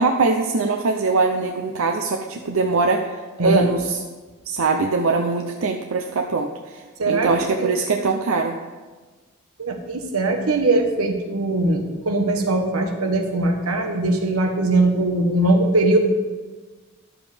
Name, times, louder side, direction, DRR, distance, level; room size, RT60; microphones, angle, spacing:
voice 1, 0.0-4.0 4.5-8.5, right 3 dB, 70° right, 3 dB, 0.5 m, -22 dB
voice 2, 7.0-7.8 9.6-16.0, right 2 dB, 90° right, 4 dB, 1.1 m, -21 dB
11.0 x 7.0 x 3.4 m, 1.3 s
head